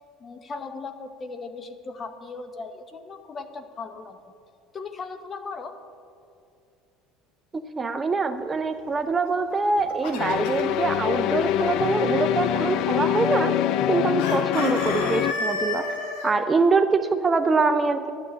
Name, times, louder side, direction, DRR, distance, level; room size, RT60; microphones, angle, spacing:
voice 1, 0.2-4.3 4.7-5.8, left 4 dB, 30° left, 9 dB, 0.9 m, -37 dB
voice 2, 7.5-13.5 13.9-15.8 16.2-18.1, right 4 dB, 20° right, 9 dB, 0.5 m, -24 dB
Chicken rooster, 9.6-10.8 14.2-16.3, left 3 dB, 85° left, 1.5 m, -30 dB
sound 1, 10.2-15.3, left 11 dB, 65° left, 0.3 m, -24 dB
11.0 x 5.8 x 8.6 m, 2.3 s
supercardioid pair, 115°, 0 cm